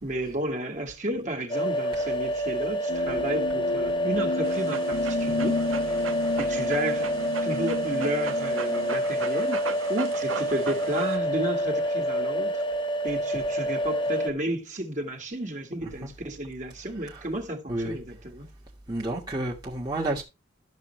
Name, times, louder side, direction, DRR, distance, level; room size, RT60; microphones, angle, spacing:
voice 1, 0.0-5.9 6.4-12.6 13.0-18.5, right 1 dB, 40° right, 1.9 m, -32 dB
sound 1, 1.5-14.3, equal, 25° left, 1.2 m, -28 dB
sound 2, 2.9-9.0, left 4 dB, 50° left, 0.4 m, -33 dB
Dog, 4.4-11.2, right 5 dB, 90° right, 1.2 m, -38 dB
voice 2, 18.9-20.2, right 1 dB, 20° right, 1.5 m, -31 dB
12.0 x 6.8 x 3.2 m
head